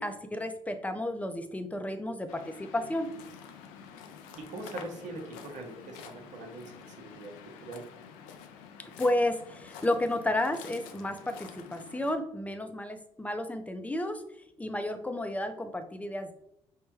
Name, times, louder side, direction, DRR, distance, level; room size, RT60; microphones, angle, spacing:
voice 1, 0.0-3.1 8.8-14.2 14.6-16.3, left 1 dB, 10° left, 7 dB, 0.6 m, -32 dB
Waves surf, 2.3-12.1, left 7 dB, 75° left, 0.4 m, -48 dB
voice 2, 4.4-7.8, right 2 dB, 60° right, 2 dB, 0.9 m, -42 dB
5.4 x 2.2 x 3.1 m, 0.76 s
hypercardioid pair, 50°, 14 cm